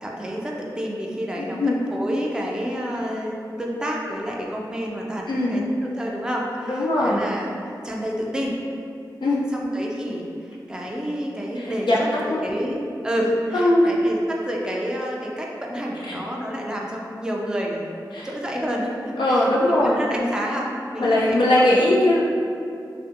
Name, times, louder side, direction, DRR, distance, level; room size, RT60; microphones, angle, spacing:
voice 1, 0.0-7.5 7.8-8.6 9.5-17.9 18.2-21.7, equal, 10° right, -2 dB, 0.3 m, -29 dB
voice 2, 1.4-1.7 5.3-5.6 6.7-7.2 9.2-9.5 11.6-12.4 13.5-13.9 16.0-16.2 18.1-18.3 19.2-20.0 21.0-22.2, left 1 dB, 80° left, -6 dB, 0.4 m, -20 dB
2.5 x 2.5 x 2.6 m, 2.5 s
wide cardioid pair, 60°, 8 cm